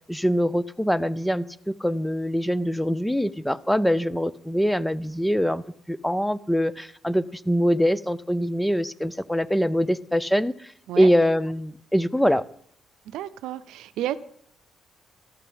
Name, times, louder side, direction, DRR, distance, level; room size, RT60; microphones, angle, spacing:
voice 1, 0.1-10.5 11.0-12.4, equal, 5° left, 19 dB, 0.6 m, -23 dB
voice 2, 13.1-14.2, right 13 dB, 90° right, 13 dB, 0.6 m, -31 dB
13.5 x 6.8 x 8.7 m, 0.64 s
cardioid pair, 90°, 0 cm